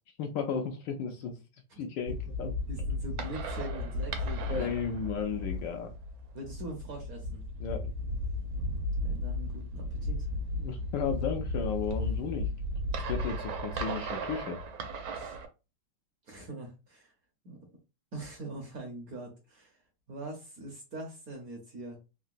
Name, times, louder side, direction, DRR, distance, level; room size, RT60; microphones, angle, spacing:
voice 1, 0.2-1.4 1.8-2.5 4.5-5.9 7.6-7.9 10.6-12.5 13.0-14.6, left 6 dB, 75° left, 4 dB, 1.1 m, -34 dB
sound 1, 2.1-15.5, left 1 dB, 85° right, 1.5 m, -35 dB
voice 2, 2.7-4.7 6.3-7.4 9.0-10.3 15.1-15.4 16.2-17.1 17.4-17.6 18.1-19.8 20.1-22.0, right 2 dB, 60° right, 0 dB, 1.0 m, -43 dB
3.7 x 2.1 x 2.5 m, 0.29 s
omnidirectional pair, 2.2 m